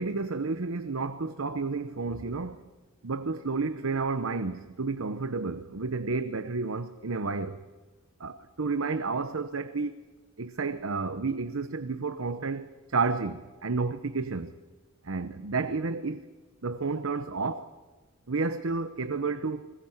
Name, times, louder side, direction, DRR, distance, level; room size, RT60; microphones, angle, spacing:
voice 1, 0.0-2.6 3.0-7.6 8.2-10.0 10.4-14.5 15.0-16.3 16.6-17.7 18.3-19.7, right 4 dB, 80° right, 0.8 m, -31 dB
21.0 x 21.0 x 7.9 m
head